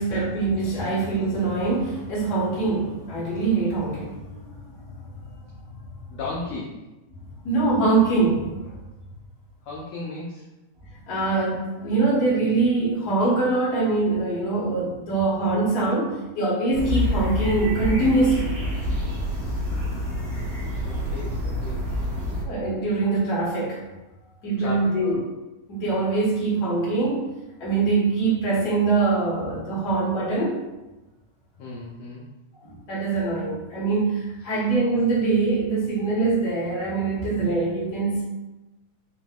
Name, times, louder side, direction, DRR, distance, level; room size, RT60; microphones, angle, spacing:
voice 1, 0.0-5.1 7.4-8.6 11.1-18.6 22.4-23.8 24.4-25.2 25.7-27.3 27.6-30.6 32.6-38.2, right 3 dB, 45° left, -7 dB, 1.2 m, -23 dB
voice 2, 6.1-6.8 9.6-10.5 20.8-21.8 24.6-25.2 31.6-32.3 34.4-34.6, left 2 dB, 80° left, -4 dB, 1.5 m, -36 dB
sound 1, 16.7-22.4, left 1 dB, 70° right, 1.1 m, -27 dB
5.7 x 3.0 x 2.4 m, 1.0 s
omnidirectional pair, 3.8 m